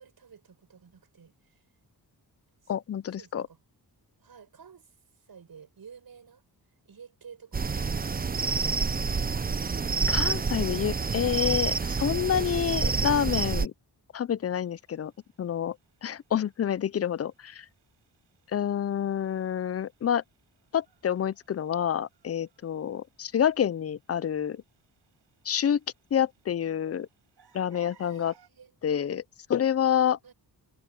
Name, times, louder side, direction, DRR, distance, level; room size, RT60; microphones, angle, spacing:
voice 1, 0.0-1.6 2.6-2.7 3.2-3.6 4.2-6.4 6.9-8.9 28.0-28.7 30.2-30.3, right 6 dB, 60° right, 7.6 m, -52 dB
voice 2, 2.7-3.5 10.1-13.7 14.1-15.1 15.4-15.8 16.0-17.7 18.5-20.2 20.7-24.6 25.5-25.8 26.1-27.1 27.5-28.3 28.8-29.2 29.5-30.2, left 9 dB, 40° left, 0.4 m, -28 dB
sound 1, 7.5-13.7, right 5 dB, 20° right, 0.6 m, -28 dB
sound 2, 14.4-28.5, right 7 dB, 85° right, 5.6 m, -66 dB
wide cardioid pair, 135°, 40 cm